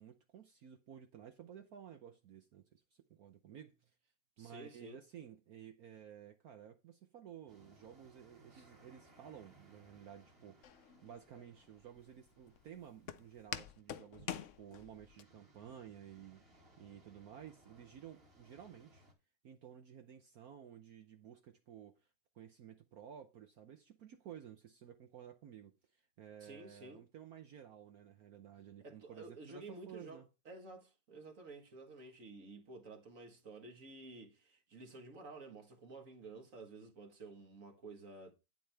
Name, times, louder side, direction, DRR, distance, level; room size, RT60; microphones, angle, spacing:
voice 1, 0.0-2.8 3.1-3.9 4.4-10.7 11.0-19.0 19.4-22.1 22.3-30.3, right 9 dB, 60° right, 1.1 m, -54 dB
voice 2, 4.4-5.0 8.5-8.7 26.4-27.0 28.8-38.3, right 3 dB, 45° right, 1.9 m, -52 dB
sound 1, 7.5-19.1, right 1 dB, 30° right, 2.4 m, -66 dB
Walk footsteps, 10.6-15.2, left 10 dB, 75° left, 0.7 m, -47 dB
9.3 x 7.7 x 3.4 m
omnidirectional pair, 2.0 m